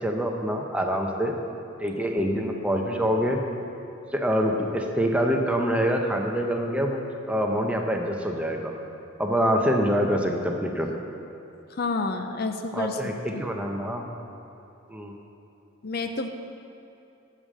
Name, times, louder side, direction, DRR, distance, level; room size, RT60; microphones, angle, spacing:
voice 1, 0.0-1.3 1.8-3.4 4.1-8.8 9.2-10.9 12.7-13.1 13.4-14.1 14.9-15.1, equal, 5° right, 2 dB, 0.7 m, -25 dB
voice 2, 11.7-13.0 13.3-13.4 15.8-16.3, left 3 dB, 50° left, 6 dB, 0.5 m, -29 dB
12.5 x 5.0 x 7.6 m, 2.8 s
head